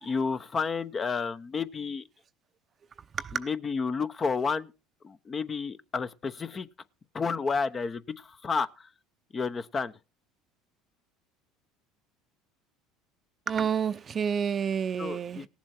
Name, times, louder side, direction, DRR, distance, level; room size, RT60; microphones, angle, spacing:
voice 1, 0.0-2.0 3.3-4.7 5.0-6.7 7.1-8.9 9.3-9.9 15.0-15.5, left 5 dB, 30° left, 0.9 m, -31 dB
voice 2, 13.5-15.5, right 7 dB, 35° right, 0.7 m, -29 dB
18.0 x 7.3 x 4.4 m
hypercardioid pair, 80°, 0 cm